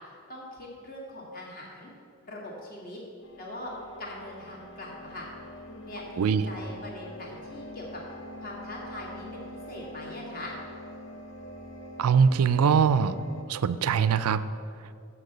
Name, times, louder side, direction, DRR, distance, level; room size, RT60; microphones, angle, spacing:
voice 1, 0.3-1.9 2.2-3.0 3.4-3.7 4.0-5.3 5.7-8.0 8.4-10.5, left 1 dB, 40° left, -3 dB, 1.8 m, -41 dB
sound 1, 3.2-13.4, equal, 60° left, 0.9 m, -44 dB
voice 2, 6.2-6.5 12.0-13.2 13.5-14.4, right 6 dB, 90° right, 14 dB, 0.4 m, -22 dB
7.1 x 6.6 x 7.7 m, 2.5 s
head